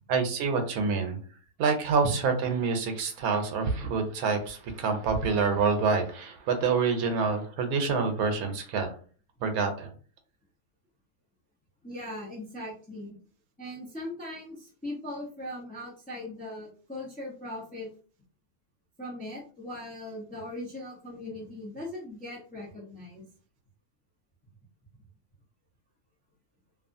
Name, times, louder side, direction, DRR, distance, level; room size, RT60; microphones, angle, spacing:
voice 1, 0.1-1.2 1.6-8.9 9.4-9.9, right 5 dB, 75° right, 6 dB, 1.1 m, -27 dB
voice 2, 11.8-13.2 13.6-17.9 19.0-23.3, left 1 dB, 10° left, -4 dB, 0.5 m, -39 dB
2.7 x 2.4 x 2.5 m, 0.41 s
omnidirectional pair, 1.6 m